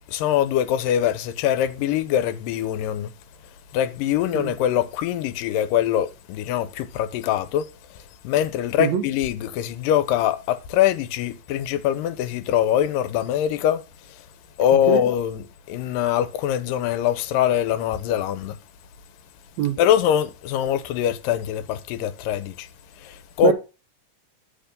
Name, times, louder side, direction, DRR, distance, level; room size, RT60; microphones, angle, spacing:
voice 1, 0.1-3.1 3.7-7.7 8.2-13.8 14.6-18.6 19.8-22.7 23.0-23.5, left 10 dB, 85° left, 2.3 m, -23 dB
voice 2, 4.3-4.5 8.8-9.0 14.9-15.1 19.6-19.8 23.4-23.5, right 9 dB, 80° right, 1.6 m, -22 dB
6.9 x 5.1 x 5.2 m
omnidirectional pair, 3.9 m